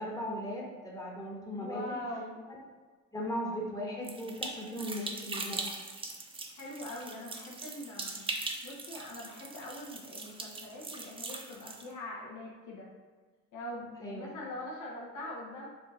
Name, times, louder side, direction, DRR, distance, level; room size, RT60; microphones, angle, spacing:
voice 1, 0.0-1.8 2.5-2.6 3.1-5.7 14.0-14.3, equal, 10° left, -3 dB, 0.9 m, -37 dB
voice 2, 1.5-2.4 6.6-12.9 13.5-15.7, left 1 dB, 80° left, -4 dB, 1.1 m, -43 dB
sound 1, 4.0-11.9, right 3 dB, 20° right, 0.4 m, -41 dB
4.1 x 2.4 x 3.1 m, 1.4 s
cardioid pair, 90°, 30 cm